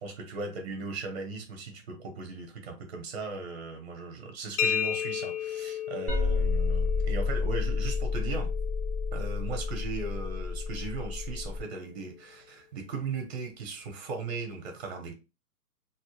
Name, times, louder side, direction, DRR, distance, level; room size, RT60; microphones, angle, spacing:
voice 1, 0.0-8.5 9.1-15.1, right 4 dB, 45° right, 0.7 m, -38 dB
sound 1, 4.6-12.1, left 9 dB, 70° left, 0.6 m, -36 dB
sound 2, 6.1-11.6, left 4 dB, 5° right, 0.5 m, -30 dB
2.1 x 2.0 x 2.9 m
hypercardioid pair, 145°, 46 cm